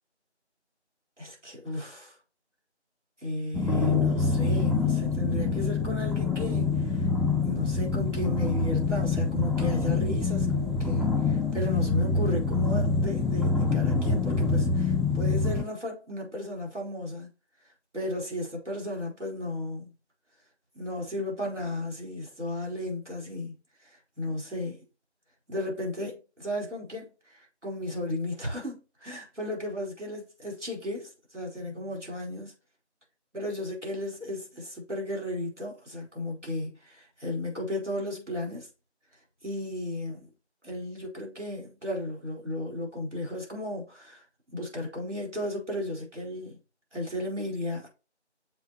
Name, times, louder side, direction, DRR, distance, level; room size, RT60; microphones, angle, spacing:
voice 1, 1.2-2.2 3.2-7.1 7.4-17.3 17.9-19.9 20.7-24.8 25.5-32.5 33.3-38.7 39.4-40.3 40.6-44.2 44.5-46.6 46.9-47.9, left 1 dB, 90° right, 4.4 m, -34 dB
sound 1, 3.5-15.6, left 4 dB, ahead, 0.5 m, -26 dB
7.2 x 5.7 x 3.0 m
figure-of-eight pair, 170°, 35 cm